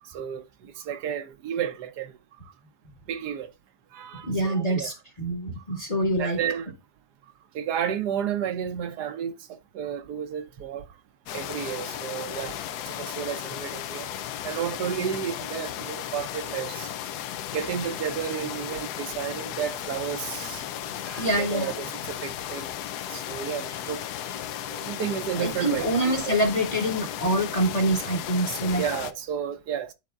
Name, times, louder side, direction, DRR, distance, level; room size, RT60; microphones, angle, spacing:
voice 1, 0.0-2.1 3.1-3.5 3.9-4.9 6.2-6.7 7.5-10.8 11.3-14.1 14.4-16.9 17.5-20.6 21.0-22.8 23.1-24.3 24.7-25.9 26.3-26.4 28.7-29.9, right 9 dB, 75° right, 1.2 m, -32 dB
voice 2, 4.2-6.4 21.2-21.7 25.4-28.8, right 1 dB, 25° left, 1.0 m, -25 dB
sound 1, 11.3-29.1, left 11 dB, 75° left, 1.1 m, -35 dB
11.0 x 4.1 x 2.4 m
omnidirectional pair, 1.8 m